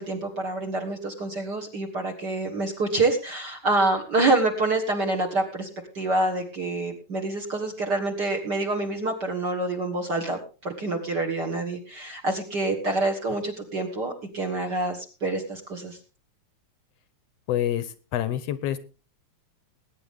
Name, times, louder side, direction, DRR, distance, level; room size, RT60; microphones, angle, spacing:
voice 1, 0.0-5.7 5.9-16.0, right 2 dB, 45° right, 2 dB, 1.7 m, -27 dB
voice 2, 17.5-18.8, left 11 dB, 70° left, 14 dB, 1.7 m, -27 dB
21.0 x 9.5 x 3.6 m, 0.34 s
omnidirectional pair, 3.5 m